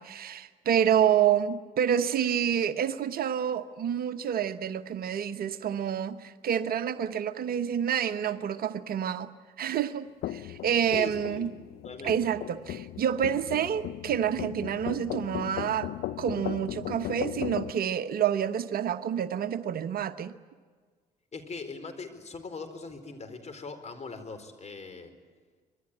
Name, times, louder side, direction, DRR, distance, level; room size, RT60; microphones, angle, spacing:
voice 1, 0.0-9.3 9.6-11.5 12.0-15.9 16.2-20.3, right 9 dB, 50° right, 11 dB, 1.0 m, -28 dB
sound 1, 10.2-17.7, left 14 dB, 55° left, 0.7 m, -37 dB
voice 2, 10.9-11.5 11.8-12.3 21.3-25.1, left 4 dB, 35° left, 8 dB, 4.3 m, -40 dB
25.5 x 22.0 x 8.9 m, 1.5 s
figure-of-eight pair, 45°, 20 cm